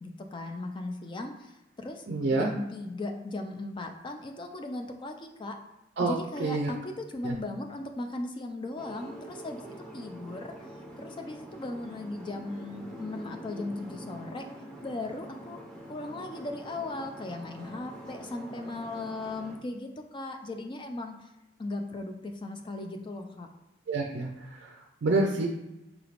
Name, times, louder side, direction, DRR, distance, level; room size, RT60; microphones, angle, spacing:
voice 1, 0.0-2.0 2.4-5.6 6.0-9.6 9.9-10.5 11.0-14.4 14.8-15.6 15.9-21.3 21.6-23.5, left 2 dB, 25° left, 4 dB, 0.4 m, -37 dB
voice 2, 2.1-2.5 6.0-6.1 6.4-6.7 7.2-7.4 23.9-24.3 24.6-24.7 25.0-25.5, right 3 dB, 60° right, 1 dB, 0.5 m, -27 dB
sound 1, 8.8-19.6, right 1 dB, 5° left, 0.7 m, -45 dB
4.9 x 3.2 x 2.5 m, 0.97 s
head